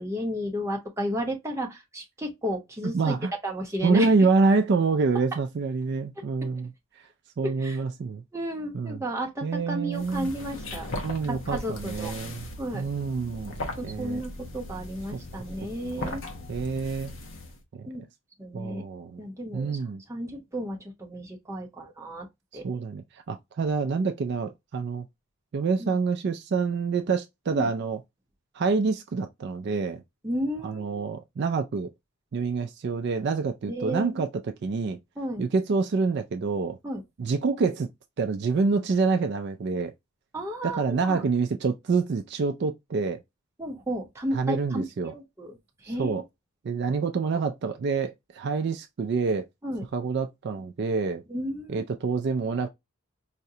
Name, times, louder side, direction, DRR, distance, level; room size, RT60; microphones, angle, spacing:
voice 1, 0.0-3.1 3.4-4.1 7.4-7.8 8.3-10.9 11.3-12.2 12.6-12.9 13.8-16.3 17.9-18.0 18.4-18.8 19.2-19.8 20.1-22.3 22.5-22.7 25.8-25.9 27.5-27.7 30.2-31.0 33.7-34.2 35.2-35.4 36.8-37.0 40.3-41.2 43.6-45.6 45.8-46.1 49.6-49.8 51.3-51.8, equal, 15° right, 0.7 m, -33 dB
voice 2, 2.9-3.3 3.8-6.7 7.4-8.2 8.7-9.0 9.4-10.3 11.0-12.5 12.7-14.2 15.1-15.2 16.0-16.2 16.5-17.1 17.7-17.9 18.5-19.2 19.5-20.0 22.6-25.1 25.5-28.0 28.5-30.0 30.6-31.9 32.3-34.3 34.6-35.0 35.4-36.8 37.2-37.9 38.2-39.9 40.6-43.2 44.3-45.1 45.8-46.2 46.6-49.4 49.9-51.2 51.7-52.7, right 4 dB, 50° right, 0.3 m, -27 dB
sound 1, 9.9-17.6, left 2 dB, 60° left, 0.7 m, -38 dB
4.7 x 2.1 x 2.7 m
head